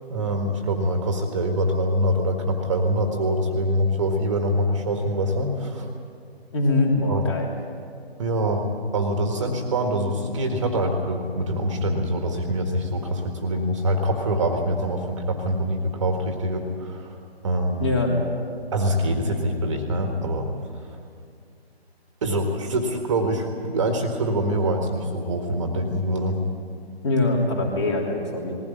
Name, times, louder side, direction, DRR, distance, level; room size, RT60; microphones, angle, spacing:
voice 1, 0.1-5.9 7.1-7.3 8.2-8.7 8.9-17.2 17.4-17.9 18.7-20.5 20.7-21.0 22.2-26.4, right 1 dB, 30° right, 4 dB, 1.7 m, -24 dB
voice 2, 6.5-7.5 17.8-18.1 27.0-28.6, left 2 dB, 25° left, 0 dB, 3.2 m, -23 dB
20.0 x 16.0 x 9.5 m, 2.4 s
figure-of-eight pair, 150°, 32 cm